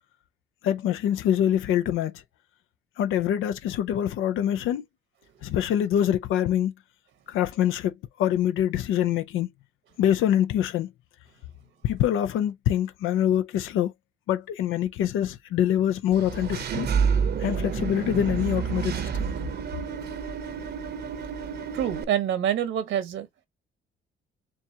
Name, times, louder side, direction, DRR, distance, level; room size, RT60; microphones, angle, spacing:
voice 1, 0.6-2.1 3.0-4.8 5.4-6.7 7.3-7.9 8.2-9.5 10.0-10.9 11.8-13.9 14.3-16.9 17.4-19.2, left 10 dB, 85° left, 0.5 m, -25 dB
Engine / Mechanisms, 16.1-22.0, right 6 dB, 55° right, 0.8 m, -29 dB
voice 2, 21.7-23.3, right 10 dB, 80° right, 1.1 m, -26 dB
7.0 x 2.4 x 2.8 m
cardioid pair, 90°, 20 cm